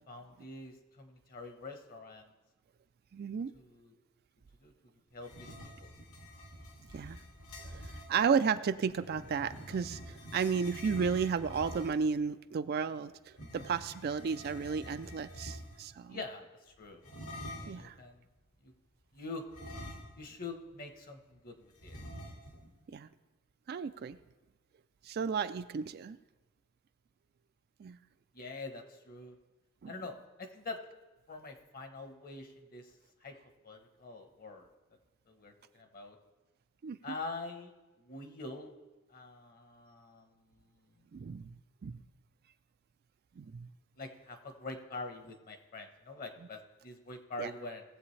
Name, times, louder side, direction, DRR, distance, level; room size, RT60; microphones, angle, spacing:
voice 1, 0.1-2.3 3.5-4.0 4.6-5.9 16.1-17.0 17.6-18.2 18.6-18.7 19.1-19.4 20.2-22.0 28.3-29.4 29.9-30.8 31.3-33.3 33.6-34.7 35.3-36.2 37.0-37.7 38.0-38.7 39.1-41.1 44.0-47.8, left 3 dB, 40° left, 6 dB, 1.1 m, -45 dB
voice 2, 3.1-3.5 6.9-7.2 7.6-7.8 8.1-16.2 17.7-17.9 22.9-23.1 23.7-24.2 25.0-26.2 27.8-28.0 29.8-29.9 36.8-37.0 41.1-41.6 41.8-42.0 43.4-43.7 47.4-47.5, right 6 dB, 45° right, 12 dB, 0.3 m, -33 dB
sound 1, 5.2-8.1 9.0-12.1 13.3-15.9 17.0-17.9 19.5-20.4 20.7-20.8 21.8-22.7, equal, 75° left, 2.1 m, -46 dB
18.5 x 7.7 x 3.3 m, 1.1 s
head